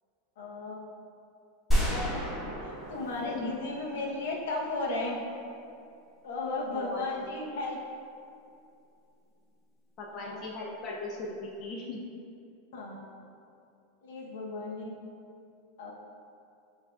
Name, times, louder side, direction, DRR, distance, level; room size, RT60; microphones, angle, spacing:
voice 1, 0.4-0.8 1.7-5.2 6.2-7.8 10.1-10.4 10.8-10.9 12.7-13.1 14.0-14.9 15.8-15.9, left 2 dB, 75° left, -2 dB, 0.7 m, -35 dB
sound 1, 1.7-4.6, equal, 5° left, 1.2 m, -31 dB
voice 2, 3.2-3.5 6.6-7.3 10.0-12.0, left 2 dB, 35° left, -2 dB, 0.4 m, -38 dB
7.2 x 2.6 x 2.3 m, 2.6 s
supercardioid pair, 145°, 0 cm